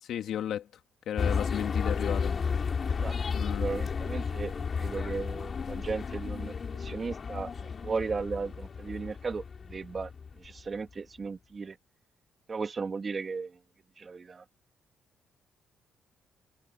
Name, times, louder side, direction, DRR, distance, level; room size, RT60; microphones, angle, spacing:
voice 1, 0.0-0.7 1.1-2.3 3.3-3.7, left 10 dB, 75° left, 2.5 m, -34 dB
sound 1, 1.2-10.8, left 5 dB, 45° left, 3.8 m, -33 dB
voice 2, 3.5-10.1 10.4-11.8 12.5-13.6 14.0-14.4, right 4 dB, 35° right, 2.6 m, -36 dB
cardioid pair, 90°, 0 cm